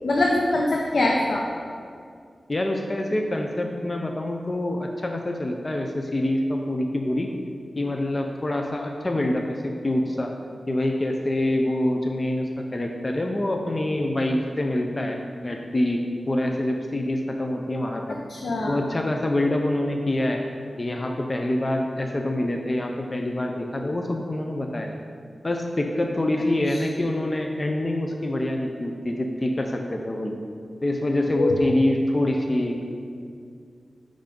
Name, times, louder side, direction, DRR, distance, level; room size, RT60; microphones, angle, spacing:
voice 1, 0.0-1.4 18.3-18.8 26.7-26.8 31.3-31.7, left 2 dB, 75° left, -1 dB, 0.6 m, -23 dB
voice 2, 2.5-7.3 7.8-10.3 10.7-15.2 15.4-18.2 18.7-20.4 20.8-24.9 25.4-30.4 30.8-32.8, left 1 dB, 30° left, 2 dB, 0.5 m, -26 dB
5.6 x 5.0 x 5.2 m, 2.2 s
wide cardioid pair, 115°, 0 cm